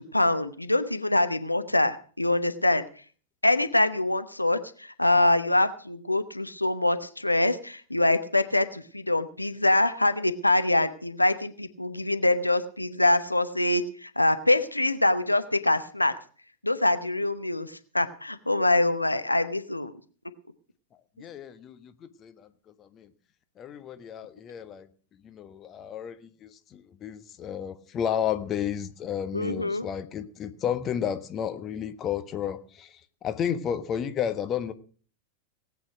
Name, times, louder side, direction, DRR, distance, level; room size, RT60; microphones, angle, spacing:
voice 1, 0.0-2.8 3.4-16.1 16.6-19.9 29.3-29.9, left 2 dB, 85° left, 0.9 m, -24 dB
voice 2, 21.2-22.5 22.8-23.1 23.6-24.9 25.2-33.0 33.2-34.7, left 9 dB, 30° left, 1.2 m, -32 dB
18.5 x 8.6 x 6.0 m
figure-of-eight pair, 90°, 0 cm